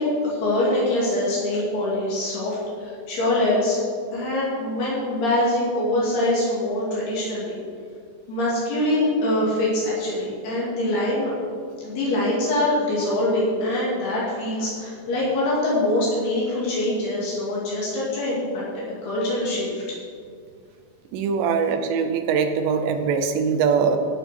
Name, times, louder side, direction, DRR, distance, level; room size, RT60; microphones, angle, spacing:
voice 1, 0.0-3.8 4.1-7.6 8.3-11.3 11.8-18.6 19.0-19.7, left 1 dB, 60° left, -7 dB, 4.5 m, -24 dB
voice 2, 21.1-24.0, right 6 dB, 80° right, 7 dB, 2.9 m, -22 dB
16.0 x 6.1 x 6.6 m, 2.2 s
omnidirectional pair, 5.4 m